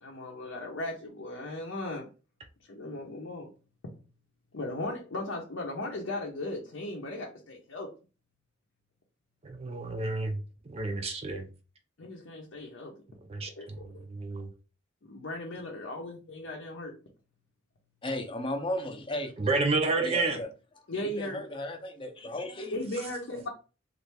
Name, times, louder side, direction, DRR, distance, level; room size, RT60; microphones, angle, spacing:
voice 1, 0.0-2.1 2.7-3.5 4.5-7.9 12.0-12.9 13.4-14.1 15.0-17.0 20.9-21.4 22.7-23.5, left 1 dB, 65° left, 0.7 m, -37 dB
voice 2, 9.4-11.5 13.3-13.8 14.1-14.5 19.4-20.4, right 3 dB, 30° right, 0.4 m, -30 dB
voice 3, 18.0-19.3 20.0-20.5 21.0-22.8, left 1 dB, 25° left, 0.5 m, -35 dB
3.1 x 2.5 x 3.3 m
head